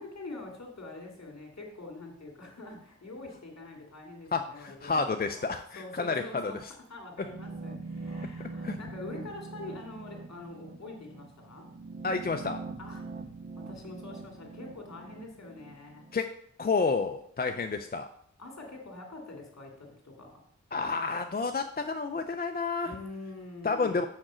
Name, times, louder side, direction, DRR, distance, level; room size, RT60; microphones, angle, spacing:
voice 1, 0.0-5.4 5.7-6.6 6.9-11.7 12.8-13.0 13.5-16.1 18.4-20.4 22.8-24.0, left 2 dB, 65° left, 0 dB, 2.3 m, -45 dB
voice 2, 4.3-6.7 8.4-8.8 12.0-12.6 16.1-16.3 16.6-18.1 20.7-22.9 23.6-24.0, left 4 dB, 35° left, 6 dB, 0.4 m, -30 dB
sound 1, 7.2-16.2, right 3 dB, 35° right, 0.4 m, -43 dB
6.4 x 4.8 x 6.2 m, 0.66 s
wide cardioid pair, 95°, 29 cm